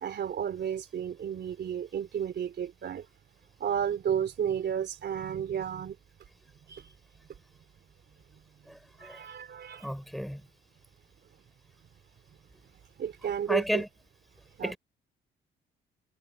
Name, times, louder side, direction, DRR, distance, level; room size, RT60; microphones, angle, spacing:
voice 1, 0.0-3.0 3.6-5.9 6.7-6.8 9.0-9.9 13.0-13.8 14.6-14.7, right 8 dB, 60° right, 3.4 m, -32 dB
voice 2, 8.7-9.2 9.8-10.4 13.5-13.9 14.6-14.8, equal, ahead, 4.3 m, -32 dB
cardioid pair, 90°, 20 cm